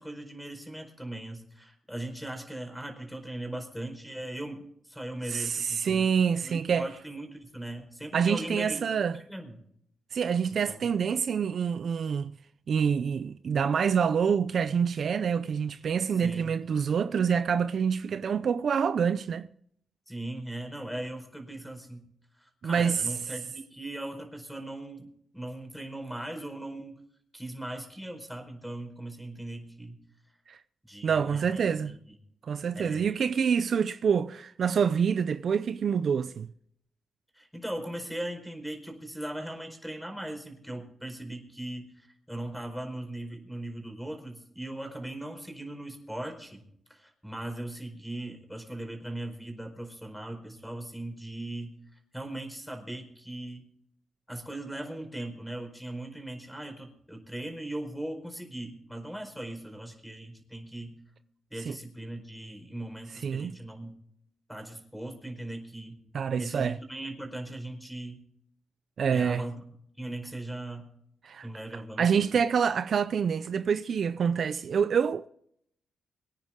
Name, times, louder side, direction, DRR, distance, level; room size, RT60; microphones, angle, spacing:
voice 1, 0.0-6.1 6.4-8.9 9.1-9.6 10.7-10.8 16.2-16.5 20.1-22.0 22.3-27.0 27.3-30.0 30.9-32.1 32.7-33.2 37.3-46.6 46.9-53.6 54.3-61.0 61.5-63.9 64.5-66.0 66.4-68.2 69.1-69.6 70.0-70.9 71.4-72.3, right 1 dB, ahead, 4.6 m, -39 dB
voice 2, 5.3-6.9 8.1-9.2 10.1-12.3 12.7-19.5 22.6-23.1 30.5-30.6 31.0-32.0 32.4-36.5 61.6-61.7 63.2-63.6 66.1-66.8 69.0-69.4 71.2-71.5 72.0-75.3, right 7 dB, 60° right, 0.6 m, -26 dB
24.0 x 9.7 x 3.7 m
cardioid pair, 95°, 0 cm